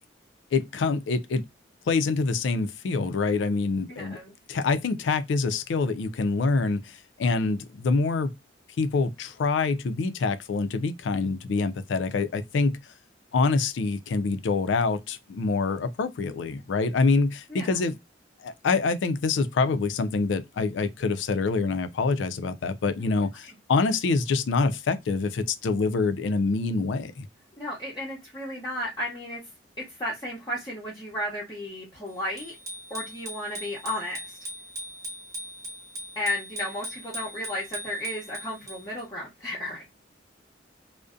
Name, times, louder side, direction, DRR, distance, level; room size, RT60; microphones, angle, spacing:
voice 1, 0.5-1.4 1.9-4.2 4.5-8.3 8.8-12.8 13.3-18.0 18.4-27.3, left 4 dB, 75° left, 0.4 m, -26 dB
voice 2, 4.0-4.3 17.5-17.8 27.6-29.4 29.8-32.5 32.9-34.4 36.2-39.8, left 1 dB, 20° left, 0.7 m, -33 dB
Bicycle bell, 32.4-39.0, equal, 15° right, 0.7 m, -39 dB
2.5 x 2.1 x 2.3 m
head